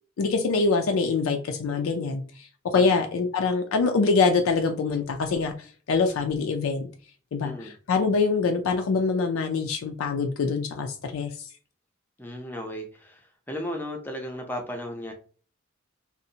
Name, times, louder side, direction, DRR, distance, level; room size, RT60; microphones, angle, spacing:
voice 1, 0.2-6.9 7.3-11.5, left 4 dB, 85° left, 4 dB, 0.4 m, -25 dB
voice 2, 7.4-7.7 12.2-15.1, equal, 10° left, 2 dB, 0.4 m, -35 dB
2.6 x 2.0 x 2.7 m, 0.41 s
head